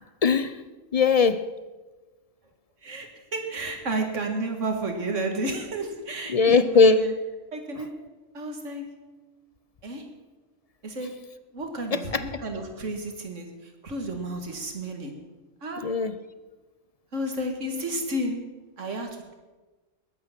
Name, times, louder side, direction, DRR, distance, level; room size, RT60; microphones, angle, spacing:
voice 1, 0.2-0.6 0.9-1.5 6.3-7.0 7.8-7.9 11.9-12.2 15.8-16.2, left 4 dB, 50° left, 13 dB, 0.4 m, -20 dB
voice 2, 2.8-7.1 7.5-7.9 8.3-8.8 9.8-10.0 10.8-11.1 11.5-13.5 13.8-15.1 15.6-15.8 17.1-18.4 18.8-19.3, right 1 dB, 70° right, 4 dB, 2.3 m, -31 dB
20.5 x 8.7 x 6.0 m, 1.2 s
omnidirectional pair, 1.3 m